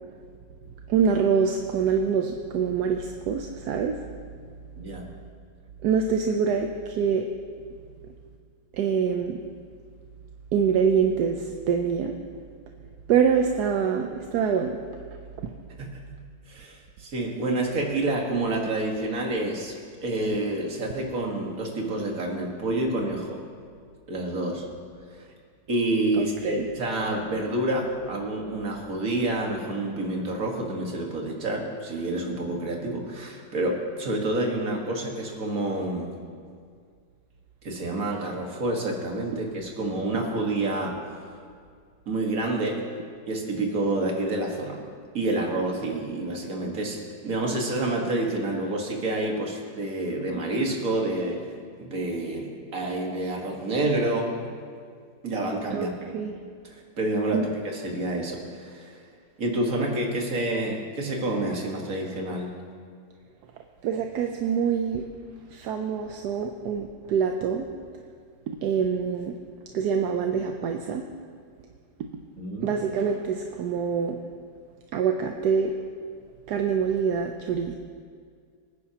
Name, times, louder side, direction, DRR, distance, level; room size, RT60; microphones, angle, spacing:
voice 1, 0.9-4.0 5.8-7.3 8.7-9.4 10.5-12.1 13.1-14.8 26.1-26.7 55.7-55.9 56.1-56.3 57.3-57.5 63.8-65.0 65.5-67.7 68.5-69.3 69.7-71.0 72.6-74.2 74.9-75.7 76.5-77.7, right 6 dB, 70° right, 4 dB, 1.1 m, -25 dB
voice 2, 4.8-5.1 15.8-16.1 16.5-19.7 20.0-23.4 24.1-24.7 25.1-25.3 25.7-36.2 37.6-41.1 42.1-42.9 43.3-44.9 45.1-51.5 51.8-54.4 55.2-56.1 56.6-59.0 59.4-62.6 72.4-72.7, right 2 dB, 50° right, 0 dB, 2.0 m, -28 dB
24.0 x 9.9 x 2.9 m, 2.1 s
omnidirectional pair, 1.9 m